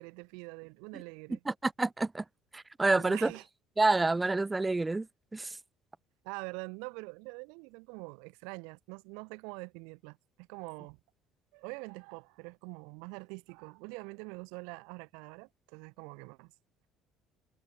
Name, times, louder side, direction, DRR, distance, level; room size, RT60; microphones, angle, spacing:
voice 1, 0.0-1.4 3.0-3.4 6.2-11.0 11.5-16.5, right 33 dB, 60° right, 5.5 m, -45 dB
voice 2, 1.5-2.2 2.5-3.3 3.8-5.1 5.3-5.6, right 3 dB, 15° right, 0.4 m, -28 dB
figure-of-eight pair, 55°, 0 cm